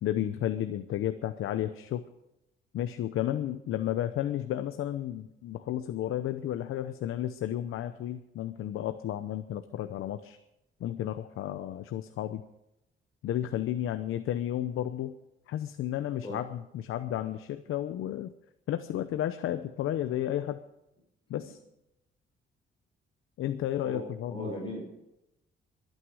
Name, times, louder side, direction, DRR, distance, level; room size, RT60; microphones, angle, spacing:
voice 1, 0.0-2.0 2.7-10.4 10.8-12.4 13.2-15.1 15.5-18.3 18.7-20.6 21.3-21.6 23.4-24.5, left 12 dB, 85° left, 9 dB, 0.8 m, -32 dB
voice 2, 23.8-24.8, left 1 dB, 25° left, -1 dB, 4.9 m, -38 dB
22.5 x 9.4 x 4.9 m, 0.91 s
cardioid pair, 155°, 21 cm